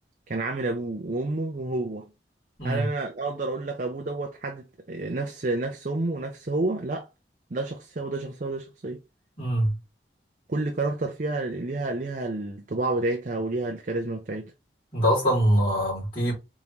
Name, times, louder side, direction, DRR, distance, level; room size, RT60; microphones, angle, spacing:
voice 1, 0.3-2.1 2.6-7.1 7.5-9.0 10.5-14.5, right 2 dB, 45° right, 0.6 m, -29 dB
voice 2, 9.4-9.8 14.9-16.3, equal, 30° left, 2.9 m, -23 dB
4.1 x 3.7 x 3.1 m
head